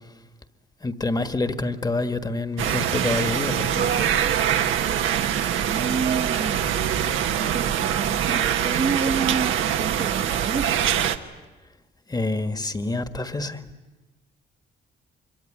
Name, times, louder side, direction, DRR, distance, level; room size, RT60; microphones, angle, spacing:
voice 1, 0.8-4.1 12.1-13.6, left 2 dB, 20° left, 1.6 m, -27 dB
sound 1, 2.6-11.2, right 9 dB, 80° right, 1.3 m, -23 dB
voice 2, 5.5-6.6 7.3-10.9, right 5 dB, 35° right, 1.1 m, -29 dB
24.5 x 23.0 x 10.0 m
cardioid pair, 90°, 20 cm